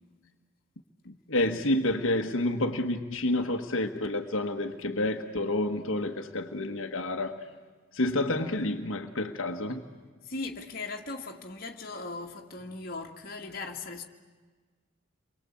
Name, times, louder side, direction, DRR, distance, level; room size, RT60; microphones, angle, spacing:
voice 1, 1.0-7.5 7.9-9.8, left 1 dB, 80° left, 1.4 m, -29 dB
voice 2, 10.2-14.0, left 3 dB, 45° left, 2.2 m, -38 dB
29.5 x 23.0 x 8.5 m
head